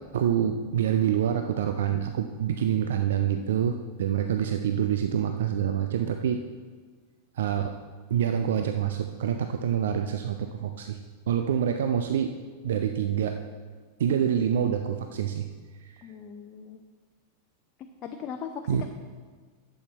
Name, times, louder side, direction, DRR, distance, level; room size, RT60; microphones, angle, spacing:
voice 1, 0.1-6.4 7.4-7.7 8.1-11.0 11.3-12.3 12.6-13.4 14.0-15.5 15.8-16.0 18.7-18.9, right 9 dB, 60° right, 7 dB, 0.5 m, -26 dB
voice 2, 16.0-16.8 18.0-18.9, left 7 dB, 35° left, 4 dB, 0.7 m, -39 dB
11.0 x 7.9 x 4.3 m, 1.5 s
figure-of-eight pair, 90°, 0 cm